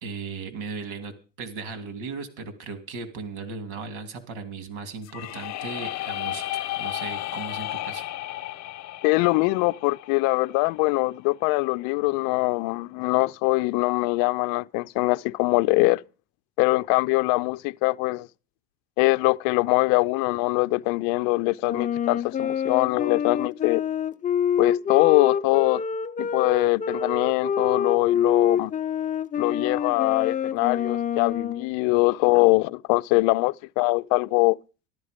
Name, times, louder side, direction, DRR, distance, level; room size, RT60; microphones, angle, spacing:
voice 1, 0.0-8.1, right 4 dB, 85° right, 2.9 m, -37 dB
sound 1, 5.0-10.9, left 16 dB, 50° left, 1.0 m, -33 dB
voice 2, 9.0-16.0 16.6-18.3 19.0-23.8 24.6-25.8 26.2-28.7 29.4-34.6, left 24 dB, 70° left, 0.6 m, -23 dB
Wind instrument woodwind instrument, 21.6-31.7, left 8 dB, 20° left, 0.7 m, -26 dB
13.0 x 12.5 x 5.1 m
supercardioid pair, 115°, 35 cm